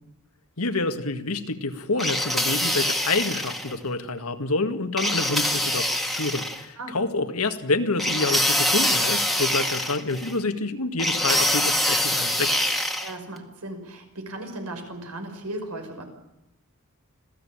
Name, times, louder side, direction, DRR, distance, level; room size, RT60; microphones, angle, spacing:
voice 1, 0.6-12.5, left 3 dB, 70° left, 8 dB, 1.9 m, -27 dB
sound 1, 2.0-3.7 5.0-6.6 8.0-10.3 11.0-13.1, left 1 dB, ahead, 1.9 m, -24 dB
voice 2, 13.0-16.0, right 1 dB, 85° right, 5 dB, 5.7 m, -36 dB
27.0 x 16.5 x 8.8 m, 0.89 s
head